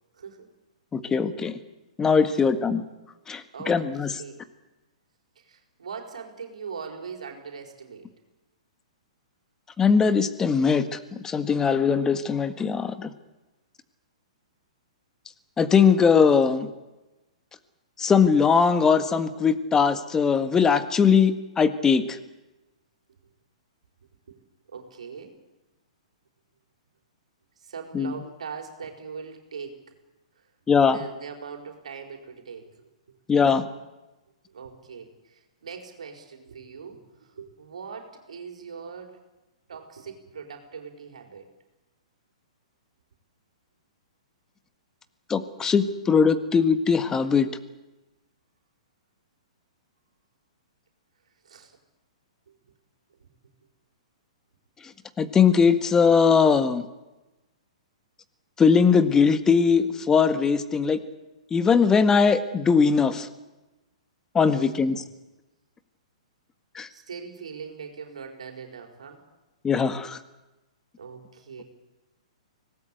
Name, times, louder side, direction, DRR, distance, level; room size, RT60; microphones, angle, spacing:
voice 1, 0.1-0.5 3.5-4.4 5.4-8.1 24.3-24.4 24.7-25.4 27.6-29.8 30.9-32.9 34.5-39.2 39.7-41.5 45.6-45.7 51.4-51.8 53.2-53.3 64.4-65.1 66.9-69.2 71.0-71.6, right 6 dB, 75° right, 4 dB, 4.5 m, -41 dB
voice 2, 0.9-1.5 2.0-2.8 3.3-4.1 9.8-11.0 11.2-13.1 15.6-16.7 18.0-22.2 27.9-28.1 30.7-31.0 33.3-33.6 45.3-47.5 55.2-56.9 58.6-61.0 61.5-63.3 64.3-65.0 66.8-66.9 69.6-70.2, left 6 dB, 15° left, 10 dB, 1.7 m, -20 dB
25.0 x 19.0 x 8.4 m, 1.1 s
hypercardioid pair, 120°, 4 cm